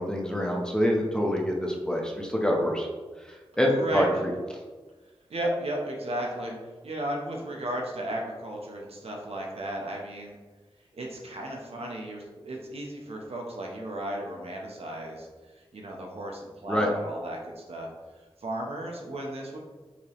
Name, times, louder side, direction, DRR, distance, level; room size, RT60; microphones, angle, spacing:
voice 1, 0.0-2.9 3.5-4.3 16.7-16.9, equal, 5° left, -1 dB, 0.9 m, -26 dB
voice 2, 3.7-4.2 5.3-6.6 6.8-10.4 11.0-15.3 15.7-17.9 18.4-19.6, right 1 dB, 80° right, 0 dB, 0.8 m, -34 dB
5.0 x 3.3 x 3.0 m, 1.3 s
wide cardioid pair, 60°, 10 cm